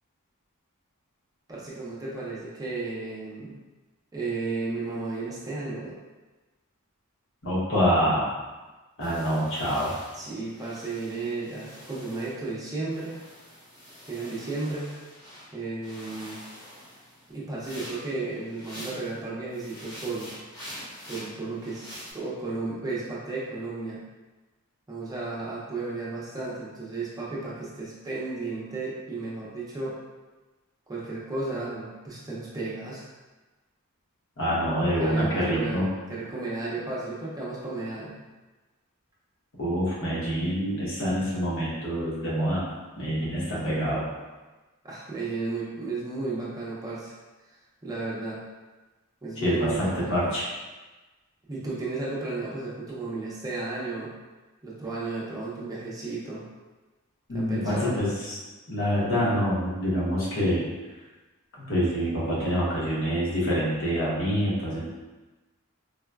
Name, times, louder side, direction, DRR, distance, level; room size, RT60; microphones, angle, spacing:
voice 1, 1.5-3.5 4.1-6.0 10.1-13.2 14.1-14.9 15.5-16.4 17.3-20.3 21.1-24.0 24.9-30.0 30.9-33.1 34.8-38.2 44.8-47.1 47.5-48.4 49.2-50.2 51.5-54.1 54.6-56.5 57.3-58.0, right 3 dB, 15° right, -6 dB, 0.5 m, -34 dB
voice 2, 7.4-8.3 9.0-9.9 34.4-35.9 39.6-42.7 43.0-44.1 49.4-50.5 57.3-58.4 58.7-60.7 61.6-64.9, equal, 60° left, -6 dB, 0.9 m, -26 dB
sound 1, 9.0-12.6 12.9-15.5 15.8-19.2 19.5-22.1, equal, 20° left, 0.7 m, -45 dB
3.8 x 2.1 x 2.2 m, 1.2 s
head